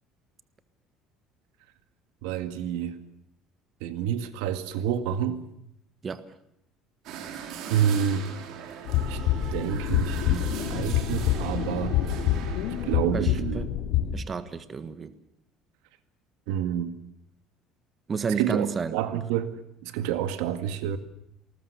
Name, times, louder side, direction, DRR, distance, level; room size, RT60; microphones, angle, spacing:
voice 1, 2.2-3.0 3.8-5.4 7.7-8.3 9.1-9.2 9.5-12.2 12.8-13.6 16.5-16.9 18.4-21.0, right 9 dB, 90° right, 1.9 m, -28 dB
sound 1, 7.0-12.9, right 8 dB, 65° right, 3.8 m, -40 dB
sound 2, 8.9-14.1, left 11 dB, 80° left, 3.0 m, -26 dB
voice 2, 13.1-13.7 14.1-15.1 18.1-18.9, right 5 dB, 25° right, 1.4 m, -31 dB
27.5 x 20.5 x 6.9 m
cardioid pair, 140°, 0 cm